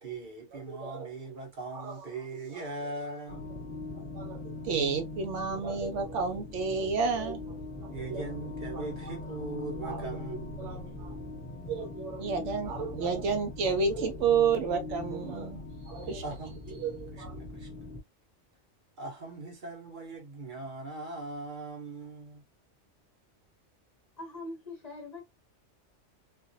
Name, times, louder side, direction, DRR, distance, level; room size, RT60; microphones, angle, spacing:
voice 1, 0.0-3.5 7.9-11.0 16.2-16.6 17.1-17.7 19.0-22.4, right 3 dB, 45° right, 1.0 m, -40 dB
voice 2, 0.7-1.1 1.7-2.0 4.1-7.4 7.8-8.2 8.7-8.9 9.8-11.1 11.7-16.2 16.8-17.4, right 5 dB, 80° right, 1.0 m, -31 dB
sound 1, 3.3-18.0, left 2 dB, 10° left, 1.1 m, -41 dB
voice 3, 24.2-25.2, left 2 dB, 45° left, 0.6 m, -42 dB
2.5 x 2.3 x 2.5 m
omnidirectional pair, 1.2 m